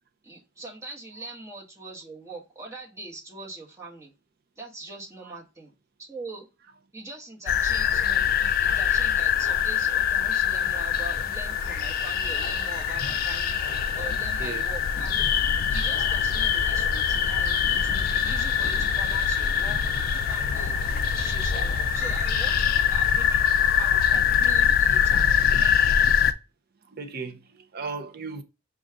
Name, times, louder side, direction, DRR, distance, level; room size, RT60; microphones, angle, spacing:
voice 1, 0.2-4.1 4.6-5.7 6.1-6.5 6.9-15.3 15.7-19.8 20.3-25.9, right 2 dB, 15° right, 1.2 m, -42 dB
sound 1, 7.5-26.3, left 8 dB, 50° left, 0.3 m, -23 dB
voice 2, 26.9-28.4, right 4 dB, 50° right, 0.5 m, -36 dB
5.1 x 2.3 x 3.6 m
head